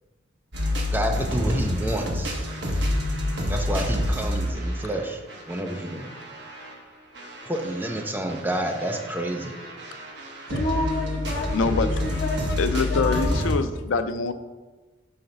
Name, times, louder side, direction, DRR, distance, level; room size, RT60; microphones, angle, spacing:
sound 1, 0.5-6.7 7.1-13.5, left 1 dB, 60° right, 1.1 m, -28 dB
voice 1, 0.9-2.4 3.5-5.2 5.5-6.1 7.5-9.5, right 1 dB, 10° right, 3 dB, 0.5 m, -29 dB
voice 2, 10.5-13.4, left 1 dB, 45° left, -5 dB, 0.7 m, -30 dB
voice 3, 11.5-11.9 12.6-14.3, left 4 dB, 90° left, 10 dB, 0.4 m, -24 dB
5.8 x 3.9 x 5.3 m, 1.2 s
head